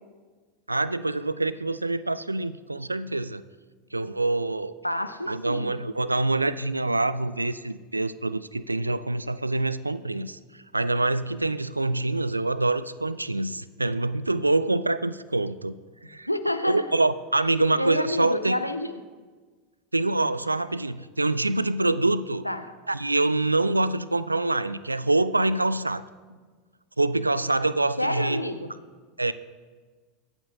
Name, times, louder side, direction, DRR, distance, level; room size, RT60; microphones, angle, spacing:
voice 1, 0.7-3.4 3.9-4.7 5.3-15.8 16.0-16.3 16.6-18.5 19.9-22.5 22.9-26.0 27.0-28.4 29.2-29.3, right 2 dB, 85° right, 17 dB, 0.3 m, -25 dB
voice 2, 4.8-5.7 16.3-16.9 17.7-19.0 22.4-22.7 28.0-28.7, left 1 dB, 90° left, 10 dB, 0.6 m, -28 dB
23.0 x 8.0 x 2.8 m, 1.5 s
figure-of-eight pair, 80°, 0 cm